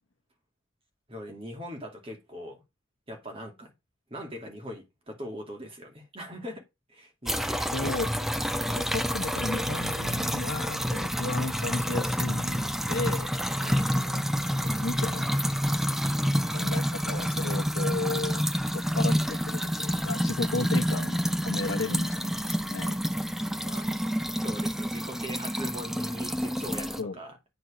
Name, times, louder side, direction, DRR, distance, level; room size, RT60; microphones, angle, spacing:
voice 1, 1.1-2.6 3.1-3.7 4.1-7.7 13.6-13.9 23.6-24.0 24.4-27.4, equal, 30° right, 2.2 m, -41 dB
sound 1, 7.3-27.0, equal, ahead, 0.5 m, -28 dB
voice 2, 7.7-8.1 8.6-13.3 14.1-14.2 14.7-15.3 16.5-18.4 18.7-23.0 27.0-27.2, left 3 dB, 75° left, 1.0 m, -34 dB
9.3 x 4.2 x 4.9 m
head